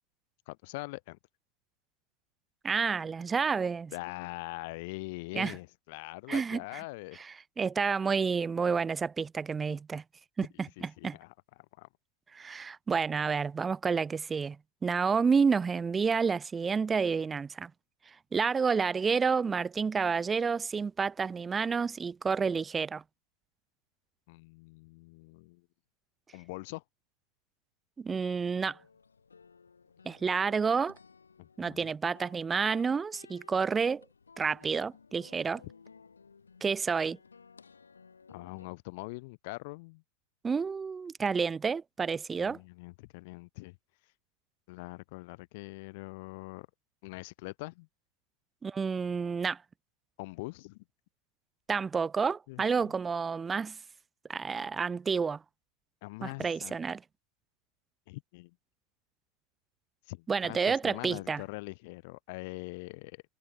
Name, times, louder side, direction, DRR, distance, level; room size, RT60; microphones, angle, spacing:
voice 1, 0.5-1.2 3.9-7.2 10.8-11.3 11.8-11.9 24.3-25.6 26.3-26.8 31.4-31.9 38.3-40.0 42.4-43.8 44.7-46.7 47.0-47.9 50.2-50.8 52.5-52.9 56.0-56.7 58.1-58.5 60.1-63.2, left 25 dB, 50° left, 0.8 m, -43 dB
voice 2, 2.6-3.9 5.3-5.5 6.3-6.6 7.2-10.0 10.4-11.2 12.3-14.6 14.8-17.7 18.3-23.0 28.0-28.8 30.0-31.0 31.6-34.0 34.4-35.6 36.6-37.2 40.4-42.6 48.6-49.6 51.7-53.8 54.3-55.4 56.2-57.0 60.3-61.4, right 5 dB, 15° right, 0.4 m, -29 dB
sound 1, 28.6-38.7, left 5 dB, 75° left, 2.3 m, -57 dB
figure-of-eight pair, 90°, 0 cm